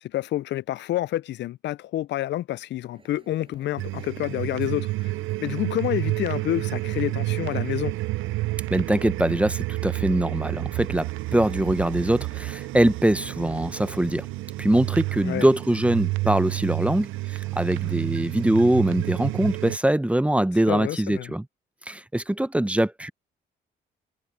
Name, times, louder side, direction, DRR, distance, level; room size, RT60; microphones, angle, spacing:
voice 1, 0.0-5.1 5.4-7.9 15.2-15.5 20.7-21.3, left 14 dB, 65° left, 0.4 m, -28 dB
Crowd, 2.9-9.2, right 3 dB, 25° right, 7.5 m, -53 dB
sound 1, 3.8-19.8, right 20 dB, 85° right, 0.6 m, -30 dB
voice 2, 8.7-14.3 14.6-21.5 21.9-23.1, right 1 dB, 5° right, 0.7 m, -23 dB
cardioid pair, 90°, 20 cm